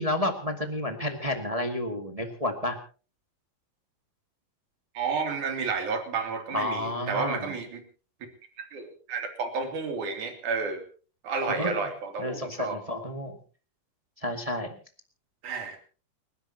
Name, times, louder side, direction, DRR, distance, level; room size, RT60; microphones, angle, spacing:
voice 1, 0.0-2.8 6.5-7.5 11.5-11.8 12.2-13.4 14.2-14.7, left 1 dB, 20° right, 5 dB, 1.0 m, -30 dB
voice 2, 4.9-7.8 8.6-10.8 11.2-12.8 15.4-15.8, right 4 dB, 60° right, 5 dB, 4.2 m, -31 dB
30.0 x 12.5 x 2.8 m, 0.37 s
omnidirectional pair, 4.0 m